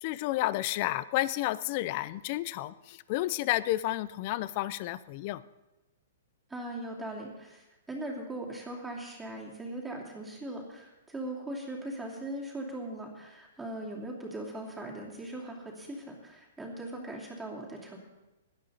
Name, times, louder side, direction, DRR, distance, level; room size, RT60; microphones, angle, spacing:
voice 1, 0.0-5.4, left 16 dB, 45° left, 17 dB, 0.5 m, -31 dB
voice 2, 6.5-18.0, right 1 dB, 5° right, -3 dB, 2.9 m, -40 dB
17.5 x 11.5 x 4.2 m, 1.0 s
hypercardioid pair, 140°, 0 cm